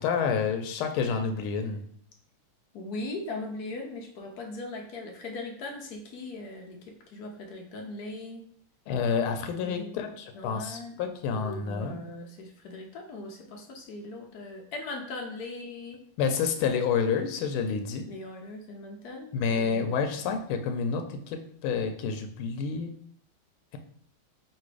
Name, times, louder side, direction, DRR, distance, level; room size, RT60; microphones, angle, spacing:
voice 1, 0.0-1.8 8.9-12.0 16.2-18.1 19.3-22.9, left 6 dB, 85° left, 6 dB, 1.5 m, -29 dB
voice 2, 2.7-8.4 9.6-11.0 11.3-16.0 18.1-20.0, left 2 dB, 65° left, 1 dB, 1.0 m, -39 dB
3.9 x 2.5 x 4.7 m, 0.62 s
omnidirectional pair, 2.3 m